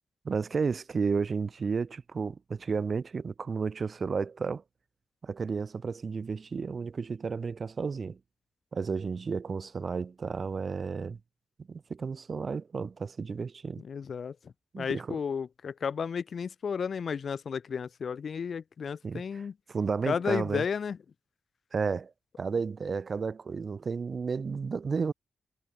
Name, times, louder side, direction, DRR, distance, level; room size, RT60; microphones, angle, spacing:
voice 1, 0.2-4.6 5.2-8.2 8.7-11.2 11.7-13.8 14.7-15.2 19.0-20.6 21.7-22.1 22.4-25.1, right 5 dB, 45° right, 0.7 m, -32 dB
voice 2, 13.9-14.3 14.8-19.5 20.1-21.0, left 6 dB, 60° left, 0.7 m, -33 dB
cardioid pair, 105°, 0 cm